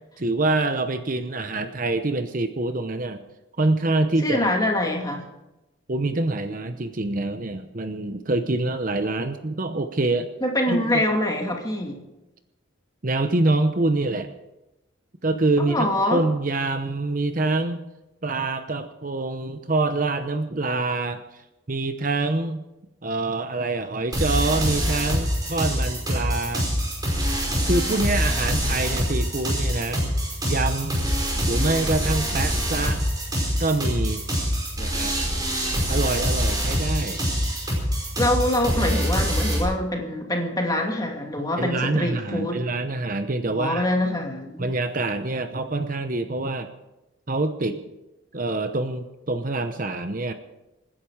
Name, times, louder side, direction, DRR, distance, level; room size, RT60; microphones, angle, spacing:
voice 1, 0.2-3.2 3.6-4.6 5.9-10.3 10.7-11.0 13.0-14.3 15.2-17.8 18.2-21.2 21.7-22.6 23.0-26.6 27.7-30.1 30.5-31.0 31.5-33.0 33.6-34.2 34.8-35.1 35.9-37.2 41.6-43.9 44.6-46.7 47.3-47.8 48.3-50.3, right 2 dB, 40° right, 8 dB, 0.9 m, -25 dB
voice 2, 4.2-5.2 10.4-12.0 15.6-16.2 38.2-42.6 43.5-44.7, left 1 dB, 20° left, 1 dB, 2.4 m, -25 dB
sound 1, 24.1-39.6, equal, 20° right, 5.2 m, -25 dB
26.0 x 10.5 x 4.9 m, 0.97 s
head